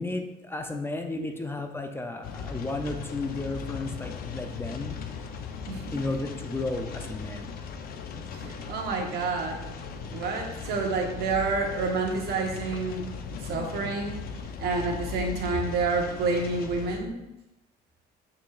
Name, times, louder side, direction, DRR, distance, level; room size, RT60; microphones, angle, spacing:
voice 1, 0.0-5.4 5.9-7.5, left 2 dB, 15° left, 5 dB, 0.5 m, -33 dB
sound 1, 2.2-17.0, left 5 dB, 65° left, 0.7 m, -38 dB
voice 2, 5.7-6.0 8.2-9.6 10.1-13.1 13.4-14.1 14.6-17.2, right 3 dB, 70° right, 1 dB, 1.2 m, -29 dB
6.4 x 5.9 x 2.5 m, 0.92 s
cardioid pair, 110°, 17 cm